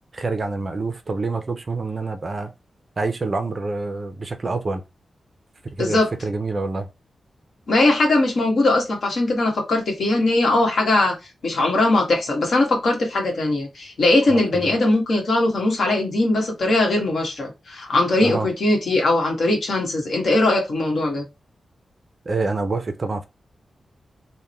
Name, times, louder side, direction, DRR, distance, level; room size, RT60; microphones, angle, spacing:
voice 1, 0.1-2.5 3.0-4.8 5.7-6.9 14.3-14.7 18.2-18.5 22.3-23.3, right 3 dB, 30° right, 0.5 m, -27 dB
voice 2, 5.8-6.1 7.7-11.1 11.4-21.2, left 2 dB, 60° left, 1.4 m, -20 dB
3.5 x 2.2 x 4.3 m
wide cardioid pair, 170°, 0 cm